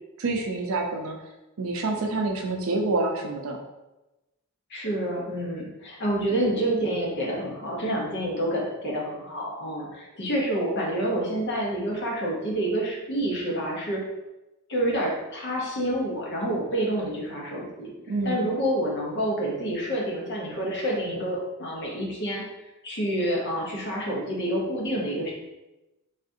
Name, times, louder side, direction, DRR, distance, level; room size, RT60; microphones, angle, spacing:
voice 1, 0.2-1.2 1.6-3.6 6.2-6.4 18.1-18.4, right 3 dB, 70° right, 2 dB, 0.5 m, -27 dB
voice 2, 4.7-14.0 14.7-17.9 18.2-22.4 22.8-25.3, right 1 dB, 55° left, -2 dB, 0.8 m, -28 dB
3.5 x 2.4 x 2.6 m, 1.0 s
head